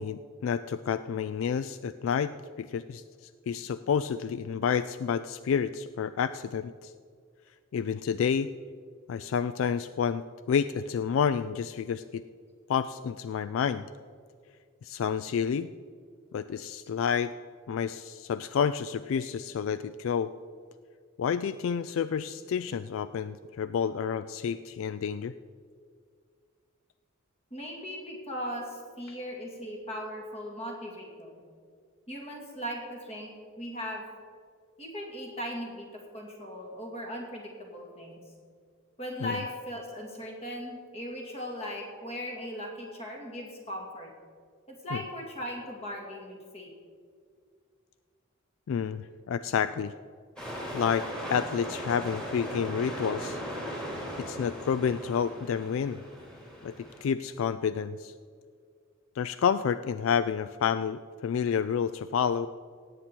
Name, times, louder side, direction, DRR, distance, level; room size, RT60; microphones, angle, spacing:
voice 1, 0.0-6.9 7.7-8.5 9.1-12.2 12.7-13.9 14.8-15.7 16.3-17.3 17.7-20.3 21.2-25.3 39.2-39.4 44.9-45.0 48.7-49.9 50.7-53.4 54.2-56.0 56.6-58.1 59.2-62.5, left 7 dB, 70° left, 13 dB, 0.3 m, -29 dB
voice 2, 27.5-31.4 32.1-33.3 33.6-34.0 34.8-35.9 36.1-38.2 39.0-44.1 44.7-46.7, equal, 30° left, 0 dB, 2.2 m, -38 dB
sound 1, 50.4-57.0, equal, 5° left, 2.5 m, -38 dB
17.5 x 8.3 x 4.5 m, 2.1 s
head